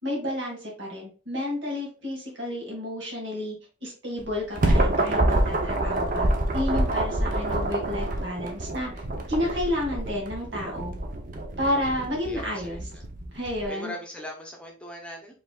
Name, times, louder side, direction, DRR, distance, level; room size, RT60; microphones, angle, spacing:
voice 1, 0.0-3.6 3.8-9.0 9.3-10.9 11.6-12.8 13.3-13.9, left 1 dB, 65° right, -1 dB, 2.0 m, -31 dB
sound 1, 4.2-13.7, right 1 dB, 40° right, 0.7 m, -27 dB
voice 2, 12.2-13.0 13.6-15.3, equal, 5° left, 0 dB, 0.8 m, -40 dB
5.0 x 3.4 x 2.3 m, 0.36 s
head